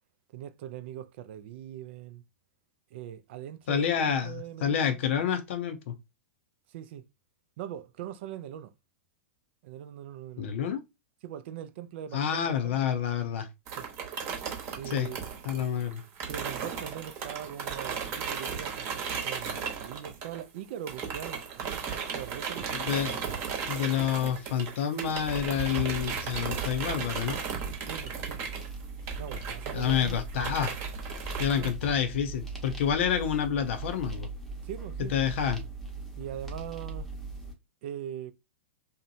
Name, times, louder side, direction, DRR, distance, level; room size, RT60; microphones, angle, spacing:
voice 1, 0.3-2.2 2.9-4.8 6.7-7.1 7.6-8.7 9.6-10.5 11.2-12.9 13.8-13.9 14.7-15.2 16.3-21.8 22.1-22.8 27.8-28.4 29.2-30.2 31.3-31.7 34.6-35.1 36.1-37.1 37.8-38.3, right 10 dB, 60° right, 0.4 m, -41 dB
voice 2, 3.7-4.3 4.6-5.9 10.4-10.8 12.1-13.5 14.9-15.1 15.5-16.0 22.7-23.2 23.7-27.4 29.7-30.8 31.4-34.3 35.0-35.6, left 8 dB, 65° left, 0.5 m, -28 dB
sound 1, 13.7-20.6 20.9-31.7, right 6 dB, 40° right, 0.9 m, -36 dB
sound 2, 25.1-37.5, right 2 dB, 5° left, 0.7 m, -39 dB
2.7 x 2.1 x 2.6 m
hypercardioid pair, 110°, 7 cm